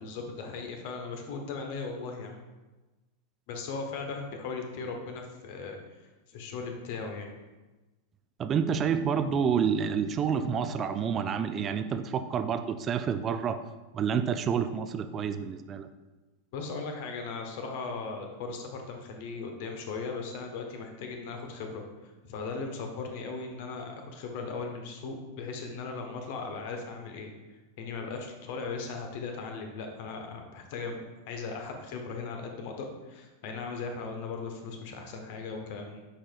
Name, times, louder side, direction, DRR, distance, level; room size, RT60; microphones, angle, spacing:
voice 1, 0.0-2.4 3.5-5.8 6.3-7.3 16.5-21.8 22.2-27.3 27.8-36.0, left 4 dB, 50° left, 3 dB, 1.0 m, -38 dB
voice 2, 8.4-13.6 13.9-15.9, right 7 dB, 25° right, 9 dB, 0.4 m, -28 dB
8.8 x 4.8 x 2.4 m, 1.2 s
figure-of-eight pair, 90°, 0 cm